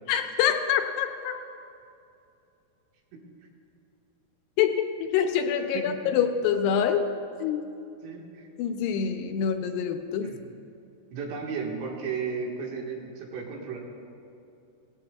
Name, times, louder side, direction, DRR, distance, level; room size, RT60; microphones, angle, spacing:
voice 1, 0.1-1.3 4.6-7.1 7.4-7.6 8.6-10.3, left 8 dB, 80° left, 5 dB, 2.6 m, -26 dB
voice 2, 5.7-6.1 8.0-8.5 10.2-10.4 11.1-13.8, right 5 dB, 85° right, -1 dB, 3.9 m, -34 dB
18.0 x 15.5 x 2.3 m, 2.7 s
omnidirectional pair, 5.0 m